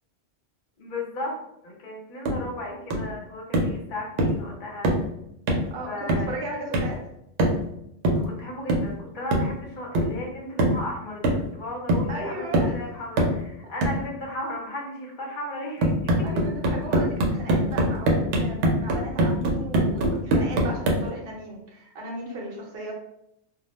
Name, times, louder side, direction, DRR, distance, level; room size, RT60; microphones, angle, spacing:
voice 1, 0.8-4.9 5.9-6.3 8.2-12.5 12.7-16.4, left 1 dB, 50° left, -1 dB, 0.7 m, -35 dB
sound 1, 2.3-2.5 2.9-3.1 3.5-3.8 4.2-4.4 4.8-5.1 5.5-5.7 6.1-6.4 6.7-7.0 7.4-7.7 8.0-8.3 8.7-9.0 9.3-9.6 9.9-10.2 10.6-10.9 11.2-11.6 11.9-12.2 12.5-12.8 13.2-13.4 13.8-14.1 15.8-21.1, right 1 dB, 90° right, 0.9 m, -23 dB
voice 2, 5.7-7.0 12.1-12.7 16.2-22.9, right 1 dB, 60° right, -2 dB, 0.9 m, -36 dB
2.2 x 2.1 x 3.0 m, 0.80 s
omnidirectional pair, 1.2 m